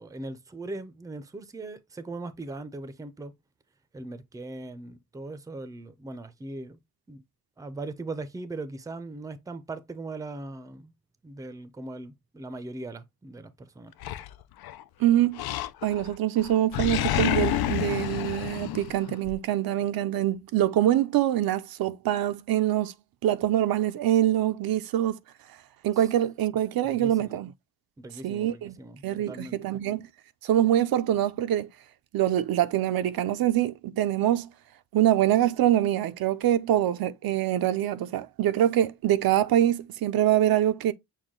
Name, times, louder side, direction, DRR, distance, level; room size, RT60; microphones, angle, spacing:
voice 1, 0.0-3.3 3.9-6.8 7.1-7.2 7.6-10.9 11.2-13.9 26.8-27.3 28.0-29.8, right 2 dB, 10° right, 0.4 m, -39 dB
Animal, 14.0-14.8 15.4-16.1 16.4-19.4, left 13 dB, 85° left, 0.5 m, -29 dB
voice 2, 15.0-15.4 15.8-22.9 23.2-25.2 25.8-27.5 28.2-28.8 29.0-30.1 30.4-31.7 32.1-34.5 34.9-40.9, right 12 dB, 75° right, 0.5 m, -24 dB
6.4 x 2.2 x 3.6 m
cardioid pair, 120°, 36 cm